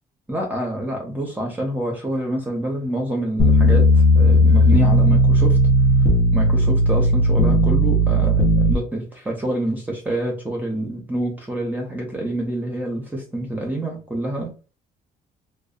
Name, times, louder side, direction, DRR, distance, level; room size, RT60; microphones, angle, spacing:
voice 1, 0.3-5.6 6.3-14.5, right 1 dB, 10° right, 0 dB, 0.7 m, -27 dB
sound 1, 3.4-8.7, equal, 50° left, 0.7 m, -15 dB
2.5 x 2.1 x 2.4 m, 0.34 s
cardioid pair, 110°, 17 cm